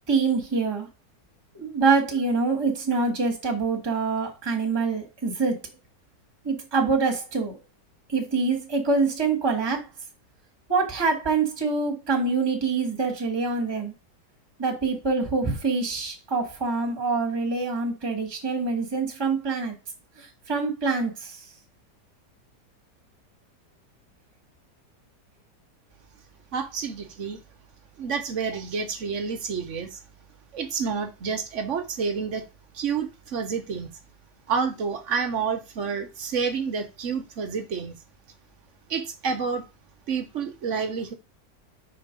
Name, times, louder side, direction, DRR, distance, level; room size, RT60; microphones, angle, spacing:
voice 1, 0.1-0.9 1.5-5.6 6.4-7.5 8.1-9.9 10.7-13.9 14.6-19.8 20.2-21.5, right 4 dB, 15° right, 1.3 m, -25 dB
voice 2, 26.5-27.4 28.0-30.0 30.5-32.4 32.7-33.9 34.5-37.9 38.9-39.6 40.1-41.1, right 5 dB, 50° right, 1.1 m, -29 dB
5.1 x 4.4 x 5.0 m
omnidirectional pair, 1.9 m